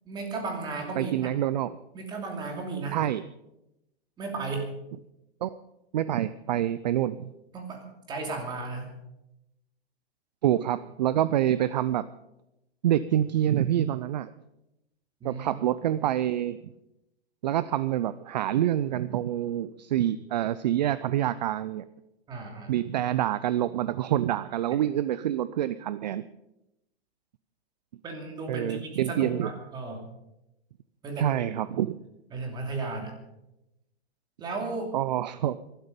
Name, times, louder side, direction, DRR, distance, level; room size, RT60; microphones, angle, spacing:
voice 1, 0.1-1.3 1.9-3.0 4.2-4.7 7.5-8.9 15.2-15.4 22.3-22.7 28.0-30.0 31.0-31.4 31.7-31.8 32.3-33.1 34.4-34.9, right 3 dB, 15° right, 3 dB, 2.7 m, -34 dB
voice 2, 1.0-1.8 2.9-3.2 5.4-5.6 5.9-7.3 10.4-12.1 12.8-14.3 15.2-16.6 17.4-21.8 22.7-26.2 28.5-29.5 31.2-32.0 34.9-35.6, right 12 dB, 45° right, 16 dB, 0.5 m, -27 dB
21.5 x 12.5 x 5.2 m, 0.90 s
hypercardioid pair, 160°, 31 cm